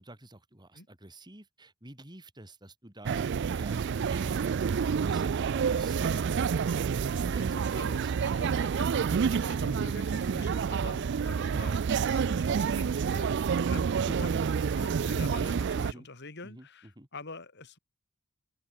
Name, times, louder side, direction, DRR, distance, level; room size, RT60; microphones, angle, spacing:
voice 1, 0.0-6.3 7.2-8.1 9.6-9.9 14.3-14.5 15.8-16.1 16.4-17.1, right 1 dB, 20° right, 3.0 m, -49 dB
sound 1, 3.1-15.9, right 6 dB, 55° right, 0.4 m, -28 dB
voice 2, 7.5-13.4 13.7-17.8, left 3 dB, 50° left, 3.0 m, -46 dB
open air
head